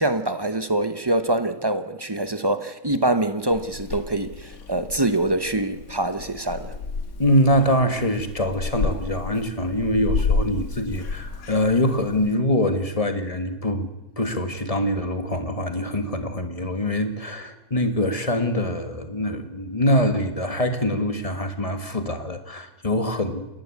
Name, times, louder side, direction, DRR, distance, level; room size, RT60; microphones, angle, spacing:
voice 1, 0.0-6.8, right 1 dB, 20° right, 0.6 m, -24 dB
Purr / Meow, 3.5-12.3, left 4 dB, 65° left, 1.8 m, -31 dB
voice 2, 7.2-13.9 14.2-23.5, left 1 dB, 25° left, 1.7 m, -24 dB
29.0 x 11.0 x 8.5 m
omnidirectional pair, 1.6 m